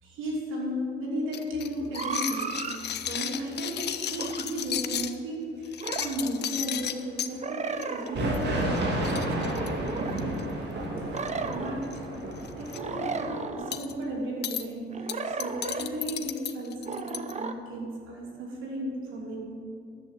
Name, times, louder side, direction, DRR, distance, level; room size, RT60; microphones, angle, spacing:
voice 1, 0.0-10.0 11.0-11.9 12.3-19.6, equal, 85° right, -2 dB, 3.1 m, -35 dB
sound 1, 1.3-5.1 5.6-7.3 7.8-8.1 8.3-8.5 8.8-8.9 9.0-10.4 11.2-11.5 11.8-12.0 12.4-12.8 13.7-13.9 14.4-14.6 15.1-17.3, left 10 dB, 60° left, 0.7 m, -34 dB
sound 2, 1.9-2.8 4.2-4.4 5.8-6.1 7.4-8.2 9.5-10.2 11.1-11.8 12.7-13.8 14.9-15.8 16.9-17.5, right 5 dB, 35° right, 0.8 m, -34 dB
sound 3, 8.1-13.4, right 1 dB, 60° right, 2.9 m, -31 dB
11.5 x 7.4 x 8.0 m, 2.4 s
cardioid pair, 90°, 20 cm